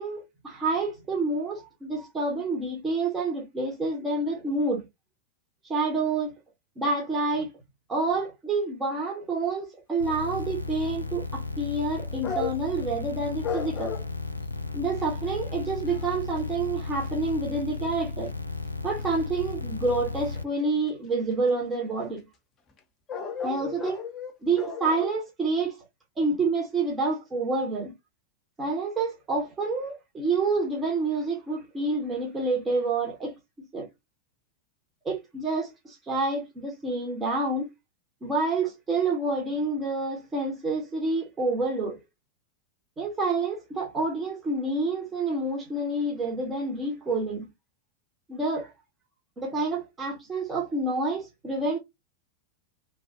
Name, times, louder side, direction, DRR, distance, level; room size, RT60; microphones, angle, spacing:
voice 1, 0.0-4.8 5.7-6.3 6.8-7.5 7.9-13.9 14.7-18.3 18.8-22.2 23.4-24.0 24.4-25.8 26.2-27.9 28.6-33.4 33.7-33.9 35.0-37.7 38.2-42.0 43.0-47.5 48.3-48.7 49.4-51.8, right 3 dB, 20° right, 1.1 m, -28 dB
sound 1, 10.0-20.4, left 3 dB, 85° left, 0.3 m, -34 dB
sound 2, 10.7-10.8 12.2-12.8 13.4-14.1 15.0-15.1 15.5-15.6 15.9-16.4 17.0-17.3 20.9-21.0 21.3-21.4 22.8-22.9 23.1-25.1, left 5 dB, 30° left, 0.8 m, -34 dB
3.2 x 2.3 x 2.9 m
figure-of-eight pair, 90°, 0 cm